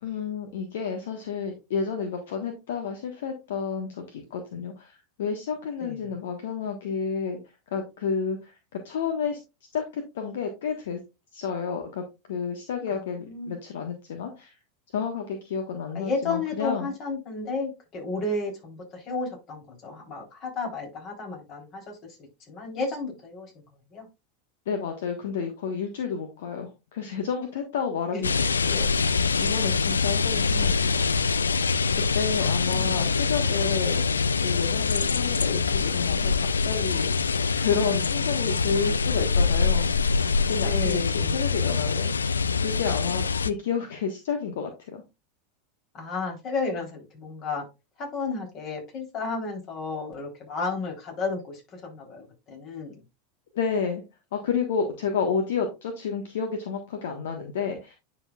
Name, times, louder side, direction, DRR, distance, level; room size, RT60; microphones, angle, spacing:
voice 1, 0.0-7.4 7.7-9.4 9.7-11.0 11.3-12.0 12.3-14.5 14.9-16.9 24.7-29.1 29.4-31.0 31.9-34.0 34.4-37.1 37.5-40.1 40.5-45.0 53.5-54.0 54.3-58.0, left 6 dB, 65° left, 4 dB, 1.3 m, -30 dB
voice 2, 5.8-6.1 12.9-13.6 15.9-22.2 22.5-23.5 23.9-24.1 28.1-28.3 32.4-33.0 40.6-41.4 45.9-47.7 48.0-53.0, left 3 dB, 40° left, 1 dB, 3.7 m, -33 dB
sound 1, 28.2-43.5, left 5 dB, 80° left, 0.4 m, -24 dB
9.6 x 6.1 x 2.4 m, 0.25 s
figure-of-eight pair, 85°, 0 cm